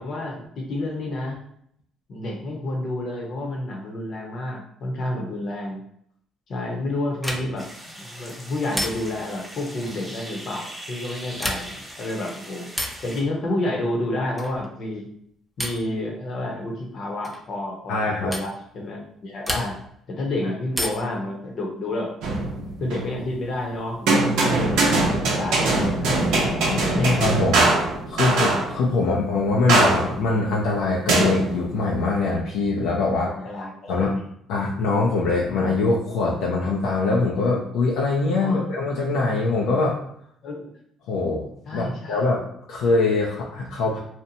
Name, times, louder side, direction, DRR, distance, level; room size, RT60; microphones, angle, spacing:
voice 1, 0.0-1.4 2.1-5.8 6.5-7.7 8.0-12.7 13.0-15.1 15.6-19.8 20.1-22.1 22.8-27.1 29.0-29.1 33.2-34.0 38.4-38.6 40.4-40.7 41.7-42.2, left 1 dB, 60° left, 0 dB, 0.8 m, -30 dB
sound 1, 7.2-7.7 8.7-9.3 11.3-11.9 12.7-13.1 14.3-14.7 15.6-15.9 17.2-17.5 18.3-18.5 19.4-20.0 20.7-21.2 22.7-23.3, equal, ahead, 0.5 m, -31 dB
sound 2, 7.6-13.2, right 1 dB, 15° right, 1.1 m, -40 dB
voice 2, 17.9-18.3 20.4-20.5 26.7-27.7 28.1-33.3 33.9-34.2 34.5-40.0 41.1-42.4 42.7-44.0, left 3 dB, 85° left, -4 dB, 0.4 m, -23 dB
sound 3, 22.2-23.2 24.1-28.8 29.7-30.3 31.1-31.9, right 2 dB, 80° right, 0.6 m, -22 dB
2.7 x 2.1 x 2.7 m, 0.69 s
supercardioid pair, 75°, 0 cm